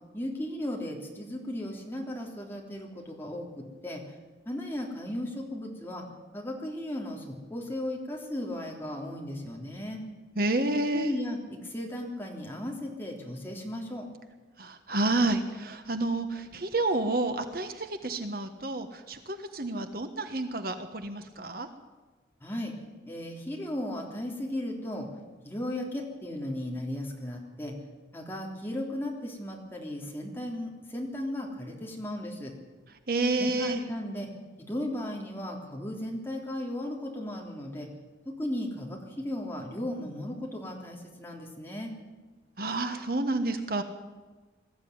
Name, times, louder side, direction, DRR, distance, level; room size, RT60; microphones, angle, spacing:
voice 1, 0.1-4.0 4.4-6.0 6.3-10.0 10.9-14.1 22.4-22.7 23.0-25.1 25.4-27.8 28.1-32.5 33.3-34.3 34.7-37.9 38.2-41.9, left 1 dB, 10° left, -1 dB, 3.3 m, -36 dB
voice 2, 10.4-11.1 14.6-21.7 33.1-33.8 42.6-43.8, right 2 dB, 55° right, 8 dB, 1.4 m, -29 dB
21.0 x 14.0 x 9.6 m, 1.3 s
head